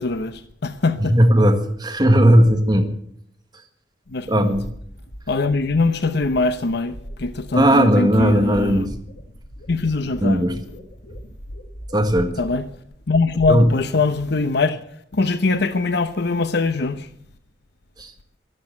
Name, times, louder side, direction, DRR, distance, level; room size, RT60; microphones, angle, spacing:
voice 1, 0.0-1.2 4.1-4.5 5.3-8.9 9.7-10.4 12.4-12.7 13.1-14.8 15.1-17.1, left 3 dB, 65° left, 0.9 m, -22 dB
voice 2, 1.0-2.9 4.3-4.7 7.5-8.9 10.2-10.6 11.9-12.3 13.5-13.7 18.0-18.1, equal, 25° right, 1.7 m, -16 dB
sound 1, 4.5-14.7, equal, 85° left, 2.4 m, -40 dB
13.0 x 13.0 x 7.7 m
head